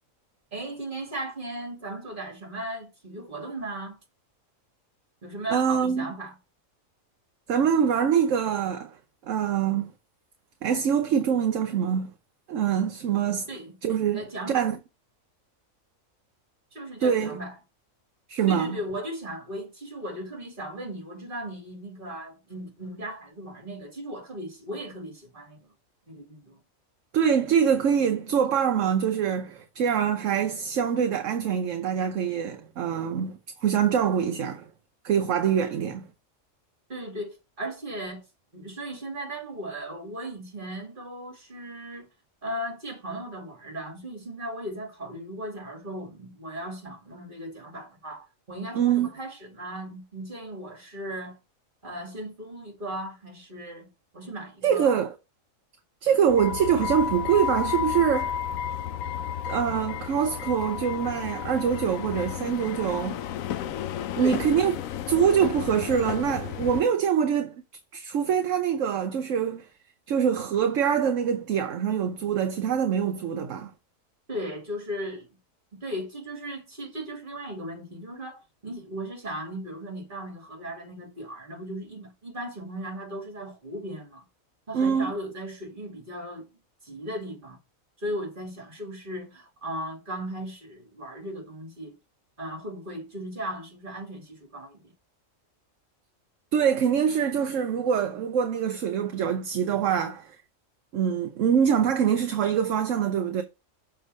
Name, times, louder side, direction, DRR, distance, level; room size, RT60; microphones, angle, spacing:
voice 1, 0.5-4.0 5.2-6.4 13.5-13.8 14.1-14.7 16.7-17.5 18.5-25.7 26.1-26.6 36.9-38.2 38.5-42.1 42.4-51.4 51.8-53.9 54.1-55.0 64.2-64.5 74.3-75.3 75.7-84.2 84.7-86.5 86.8-87.6 88.0-91.9 92.4-94.9, right 1 dB, 35° right, 2.6 m, -37 dB
voice 2, 5.5-6.1 7.5-9.0 9.3-9.9 10.6-12.1 12.5-13.5 13.8-14.8 17.0-17.4 18.3-18.8 27.1-34.7 35.0-36.1 48.8-49.1 54.6-55.1 56.0-58.4 59.4-63.2 64.2-64.7 65.1-67.5 67.9-69.7 70.1-73.7 84.7-85.1 96.5-100.4 100.9-103.4, right 8 dB, 70° right, 1.1 m, -24 dB
sound 1, 56.3-66.8, left 9 dB, 80° left, 1.0 m, -32 dB
6.6 x 3.6 x 6.2 m
omnidirectional pair, 1.4 m